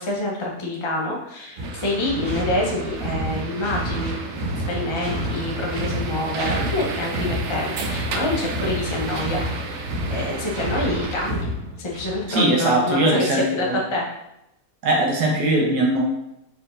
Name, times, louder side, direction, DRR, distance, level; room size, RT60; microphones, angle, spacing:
voice 1, 0.0-4.2 4.7-11.5 11.8-14.1, left 1 dB, 40° left, -2 dB, 0.4 m, -27 dB
sound 1, 1.6-12.3, equal, 50° right, 1.8 m, -30 dB
sound 2, 1.6-11.3, right 4 dB, 90° right, 0.6 m, -34 dB
voice 2, 12.3-13.8 14.8-16.0, right 1 dB, 75° right, -1 dB, 1.4 m, -20 dB
4.5 x 4.2 x 2.5 m, 0.84 s
omnidirectional pair, 1.8 m